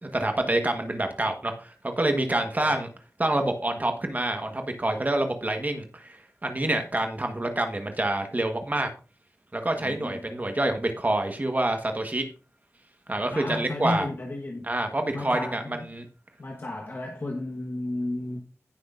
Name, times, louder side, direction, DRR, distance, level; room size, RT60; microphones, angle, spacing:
voice 1, 0.0-2.9 3.2-8.9 9.5-12.2 13.1-14.1 14.6-16.0, right 1 dB, 30° right, 1.4 m, -27 dB
voice 2, 2.4-2.8 9.8-10.1 13.3-14.7 15.1-15.7 16.4-18.4, left 2 dB, 50° left, 1.4 m, -33 dB
16.0 x 6.3 x 2.6 m
wide cardioid pair, 75°, 5 cm